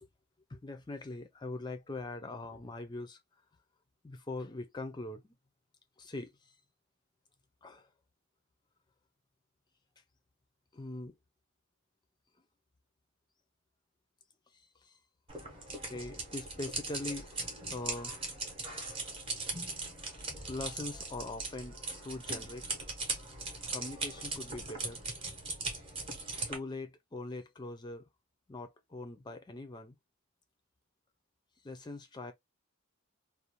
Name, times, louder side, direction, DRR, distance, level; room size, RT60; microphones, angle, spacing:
voice 1, 0.5-3.2 4.0-5.3 6.0-6.6 7.6-7.9 10.7-11.2 14.5-15.0 15.5-17.4 17.7-18.1 20.0-21.8 22.0-22.7 23.7-25.0 26.5-28.1 28.5-30.0 31.6-32.3, left 2 dB, 20° left, 0.4 m, -42 dB
sound 1, 15.3-26.6, right 3 dB, 25° right, 0.8 m, -39 dB
2.5 x 2.1 x 2.8 m
head